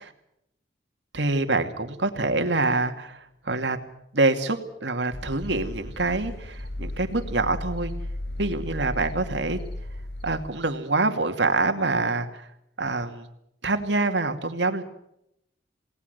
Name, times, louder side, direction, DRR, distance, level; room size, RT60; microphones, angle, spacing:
voice 1, 1.1-3.8 4.1-7.9 8.4-9.6 10.2-12.5 12.8-13.3 13.6-14.8, right 3 dB, 75° right, 6 dB, 2.5 m, -25 dB
sound 1, 5.1-10.5, left 1 dB, 65° left, 3.7 m, -35 dB
28.5 x 18.5 x 6.8 m, 0.79 s
head